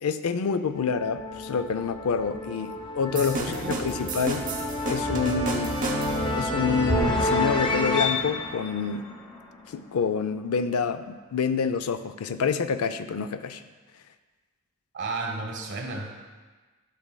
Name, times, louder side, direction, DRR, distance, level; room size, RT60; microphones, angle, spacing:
voice 1, 0.0-4.4 4.8-5.8 6.3-9.1 9.7-13.6, left 6 dB, 85° left, 11 dB, 0.4 m, -27 dB
sound 1, 0.7-9.8, left 1 dB, 25° left, 0.6 m, -29 dB
voice 2, 3.1-3.9 14.9-16.2, right 2 dB, 55° right, 2 dB, 1.2 m, -33 dB
sound 2, 3.2-6.4, right 2 dB, 40° right, 0.7 m, -33 dB
11.5 x 6.1 x 2.2 m, 1.3 s
head